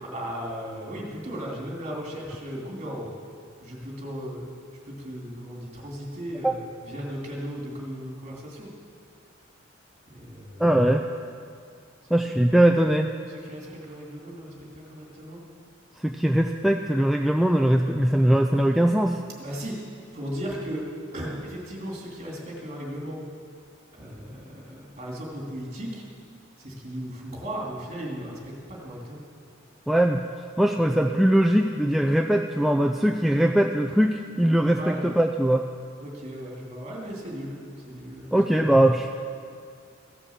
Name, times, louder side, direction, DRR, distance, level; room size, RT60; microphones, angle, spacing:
voice 1, 0.0-3.1 3.6-4.5 4.8-6.6 6.8-8.7 10.1-10.6 13.3-15.4 19.4-19.8 20.1-20.8 21.1-23.2 24.0-26.0 26.6-29.2 34.8-35.0 36.0-38.3, equal, 35° right, -3 dB, 2.8 m, -36 dB
voice 2, 10.6-11.0 12.1-13.1 16.0-19.2 29.9-30.2 30.6-35.6 38.3-39.1, right 1 dB, ahead, 3 dB, 0.3 m, -21 dB
15.0 x 7.1 x 7.2 m, 2.3 s
head